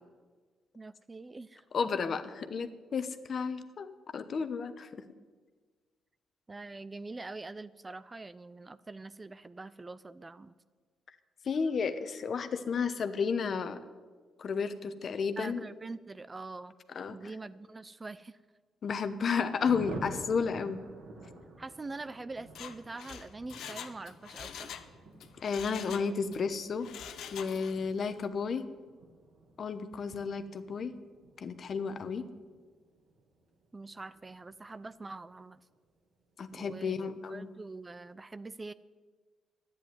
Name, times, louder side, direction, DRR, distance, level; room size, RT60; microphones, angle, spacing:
voice 1, 0.7-1.6 6.5-10.5 15.4-16.7 17.1-18.4 21.6-24.8 33.7-35.6 36.5-38.7, right 3 dB, 25° right, 15 dB, 0.5 m, -44 dB
voice 2, 1.7-5.0 11.4-13.8 14.4-15.6 16.9-17.2 18.8-20.8 25.4-26.9 27.3-28.7 29.6-30.9 31.4-32.2 36.4-37.5, left 5 dB, 50° left, 10 dB, 1.0 m, -32 dB
Thunder, 19.6-35.8 36.1-36.2 36.4-36.6 36.8-37.2, right 2 dB, 75° right, 2.7 m, -50 dB
Mechanisms, 22.4-24.9 25.2-26.4 26.8-27.9 28.2-28.3, left 8 dB, 75° left, 0.9 m, -45 dB
11.0 x 9.8 x 9.5 m, 1.5 s
cardioid pair, 90°, 0 cm